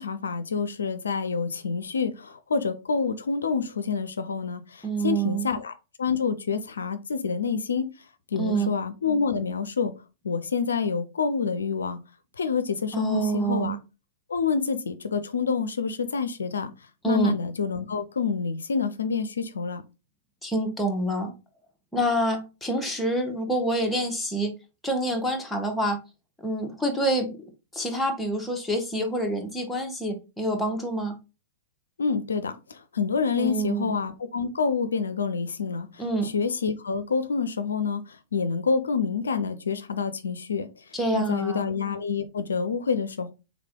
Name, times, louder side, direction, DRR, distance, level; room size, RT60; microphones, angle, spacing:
voice 1, 0.0-7.9 8.3-9.9 10.2-12.0 12.4-13.8 14.3-16.7 17.0-19.8 32.0-43.3, left 5 dB, 75° left, 0.4 m, -28 dB
voice 2, 4.8-5.5 8.3-8.7 12.9-13.8 17.0-17.3 20.4-21.3 21.9-24.5 24.8-26.0 26.4-27.4 27.7-31.2 33.4-33.8 36.0-36.3 40.9-41.7, right 2 dB, 5° left, 1.0 m, -27 dB
3.6 x 3.2 x 3.6 m
figure-of-eight pair, 105°, 0 cm